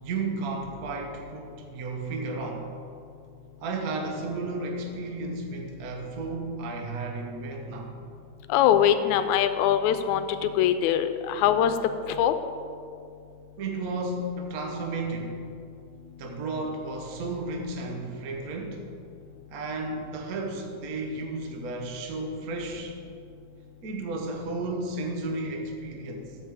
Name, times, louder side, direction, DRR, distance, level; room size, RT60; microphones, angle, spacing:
voice 1, 0.0-2.7 3.6-7.9 13.6-15.4 16.2-18.9 19.5-23.0 23.8-26.4, right 2 dB, 80° right, 2 dB, 0.8 m, -33 dB
voice 2, 8.5-11.7 12.2-12.3, left 10 dB, 85° left, 10 dB, 1.9 m, -22 dB
14.0 x 5.1 x 4.9 m, 2.4 s
omnidirectional pair, 3.3 m